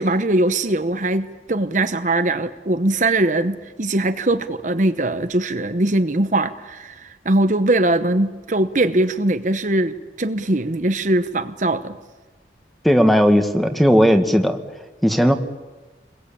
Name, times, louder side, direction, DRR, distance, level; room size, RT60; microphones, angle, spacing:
voice 1, 0.0-12.0, right 2 dB, 45° right, 9 dB, 1.0 m, -21 dB
voice 2, 12.8-14.6 15.0-15.3, equal, ahead, 7 dB, 1.7 m, -16 dB
28.5 x 22.0 x 8.7 m, 1.2 s
head